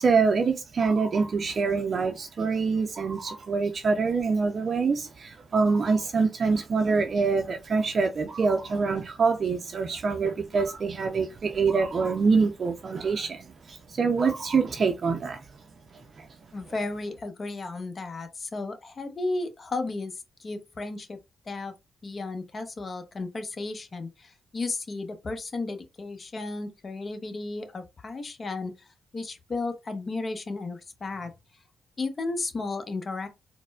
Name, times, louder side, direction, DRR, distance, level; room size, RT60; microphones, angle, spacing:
voice 1, 0.0-15.5 15.9-16.3, right 4 dB, 50° right, 0.4 m, -25 dB
voice 2, 16.5-21.2 21.5-21.7 22.0-28.7 29.1-31.3 32.0-33.3, left 3 dB, 45° left, 0.8 m, -34 dB
4.1 x 2.1 x 2.2 m
hypercardioid pair, 40°, 0 cm